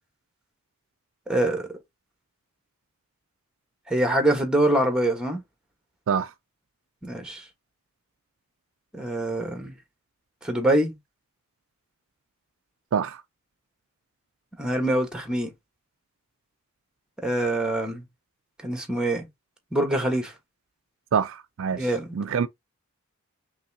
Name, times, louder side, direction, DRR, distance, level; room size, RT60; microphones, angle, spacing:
voice 1, 1.3-1.7 3.9-5.4 7.0-7.4 8.9-9.7 10.4-10.9 14.6-15.5 17.2-18.0 18.6-19.3 19.7-20.3 21.7-22.1, right 1 dB, 5° right, 1.2 m, -24 dB
voice 2, 21.1-21.9 22.1-22.5, right 7 dB, 60° right, 0.4 m, -25 dB
5.3 x 3.1 x 2.7 m
head